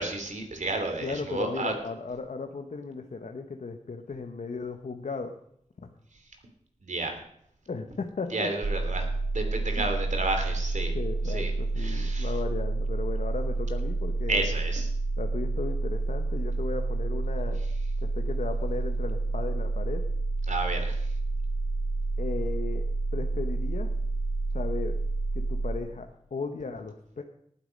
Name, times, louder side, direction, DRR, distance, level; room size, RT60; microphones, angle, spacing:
voice 1, 0.0-1.7 6.8-7.1 8.3-9.1 9.3-10.9 11.3-11.5 11.8-12.3 14.3-14.9 20.5-21.1, right 2 dB, 75° right, 4 dB, 3.1 m, -31 dB
voice 2, 1.0-5.3 5.8-5.9 7.7-8.5 9.8-9.9 10.9-14.5 15.2-17.6 18.0-20.0 22.2-22.8 23.1-23.9 24.5-25.0 25.3-27.2, left 4 dB, 75° left, 5 dB, 1.2 m, -36 dB
sound 1, 8.6-25.8, right 3 dB, 60° right, 1.5 m, -29 dB
18.5 x 8.8 x 5.3 m, 0.71 s
cardioid pair, 50°, 13 cm